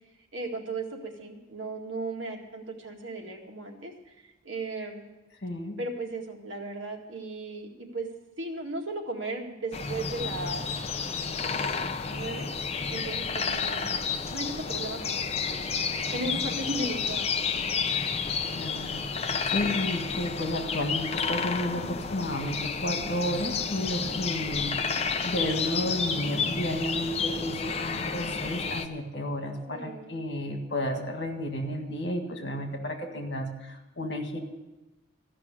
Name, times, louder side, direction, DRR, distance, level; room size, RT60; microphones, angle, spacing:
voice 1, 0.3-5.0 5.8-8.1 8.4-10.6 11.4-12.5 12.9-13.9 14.3-15.2 15.5-15.7 16.1-17.5 21.6-21.9 24.4-24.6 29.7-30.2, right 2 dB, 85° right, 1 dB, 2.0 m, -36 dB
voice 2, 5.4-5.8 18.6-24.8 25.2-34.4, left 1 dB, 65° left, 4 dB, 1.8 m, -32 dB
sound 1, 9.7-28.9, left 5 dB, 30° left, 0.5 m, -31 dB
14.0 x 6.0 x 9.7 m, 1.1 s
head